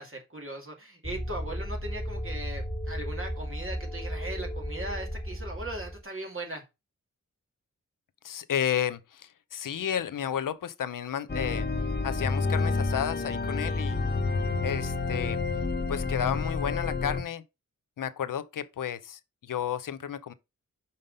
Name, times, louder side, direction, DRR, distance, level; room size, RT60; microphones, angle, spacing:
voice 1, 0.0-6.6, right 1 dB, 40° right, 2.5 m, -39 dB
sound 1, 1.0-6.0, equal, 10° left, 1.9 m, -35 dB
voice 2, 8.2-11.7 12.0-14.0 14.6-15.4 15.9-17.4 18.0-19.2 19.5-20.3, left 9 dB, 85° left, 0.7 m, -32 dB
sound 2, 11.3-17.2, left 3 dB, 30° left, 1.3 m, -29 dB
5.5 x 5.2 x 5.3 m
wide cardioid pair, 70°, 32 cm